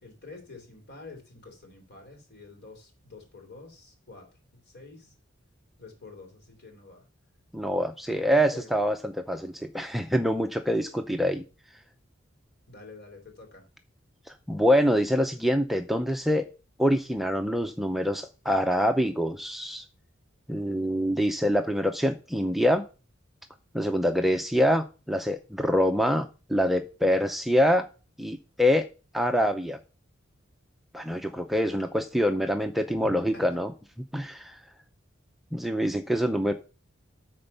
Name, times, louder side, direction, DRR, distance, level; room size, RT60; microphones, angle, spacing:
voice 1, 0.0-4.3 4.7-5.1 5.8-7.0 8.1-8.7 12.7-13.7 33.0-33.5, left 3 dB, 55° left, 3 dB, 3.7 m, -47 dB
voice 2, 7.5-11.4 14.3-16.4 16.8-19.8 20.5-22.8 23.7-27.8 28.2-28.8 29.1-29.8 30.9-33.7 34.1-34.6 35.5-36.5, equal, ahead, 6 dB, 0.5 m, -25 dB
13.0 x 4.4 x 5.5 m, 0.33 s
head